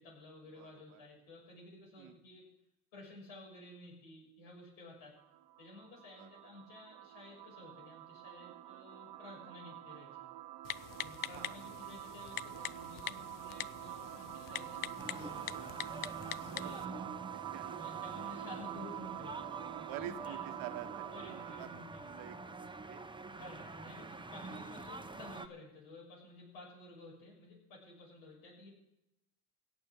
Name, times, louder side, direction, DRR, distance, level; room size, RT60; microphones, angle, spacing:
voice 1, 0.0-2.5 2.9-5.2 5.6-10.3 11.0-15.6 16.4-16.8 17.8-19.5 19.9-20.4 21.1-21.8 23.4-28.7, left 2 dB, 80° left, -2 dB, 6.8 m, -53 dB
voice 2, 0.5-1.0 2.0-2.2 6.2-6.4 9.7-9.8 11.3-11.6 16.5-17.9 19.9-23.0 23.8-24.1 24.5-24.6, right 12 dB, 75° right, 8 dB, 1.4 m, -49 dB
sound 1, 5.2-21.8, right 14 dB, 50° right, 0.6 m, -46 dB
Typing, 10.6-16.9, left 13 dB, 45° left, 0.5 m, -44 dB
sound 2, 15.0-25.5, right 2 dB, 10° right, 0.9 m, -47 dB
17.5 x 7.0 x 7.2 m, 0.85 s
supercardioid pair, 65°, 48 cm